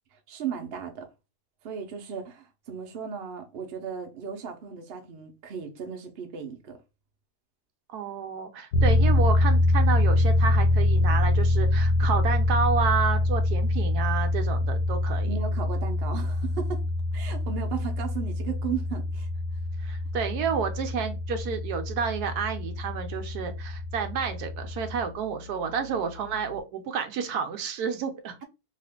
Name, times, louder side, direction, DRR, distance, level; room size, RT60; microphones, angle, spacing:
voice 1, 0.1-1.1 1.6-6.8 15.2-16.8 17.1-19.3 25.5-26.0, right 7 dB, 55° right, 0.7 m, -36 dB
voice 2, 7.9-15.3 19.8-28.4, right 6 dB, 75° right, 1.1 m, -30 dB
sound 1, 8.7-25.1, left 2 dB, 75° left, 1.0 m, -25 dB
2.8 x 2.4 x 3.5 m
omnidirectional pair, 1.8 m